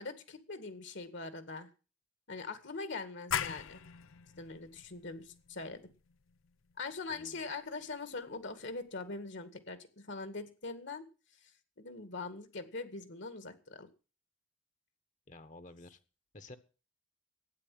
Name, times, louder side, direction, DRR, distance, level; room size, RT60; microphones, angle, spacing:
voice 1, 0.0-1.7 2.3-3.8 4.4-5.8 6.8-11.1 11.8-13.9, left 3 dB, 60° left, 11 dB, 2.1 m, -42 dB
sound 1, 3.3-8.7, left 9 dB, 75° left, 0.6 m, -42 dB
voice 2, 7.1-7.5 15.3-16.0 16.3-16.6, left 2 dB, 35° left, 11 dB, 1.4 m, -52 dB
12.5 x 9.5 x 7.8 m, 0.35 s
head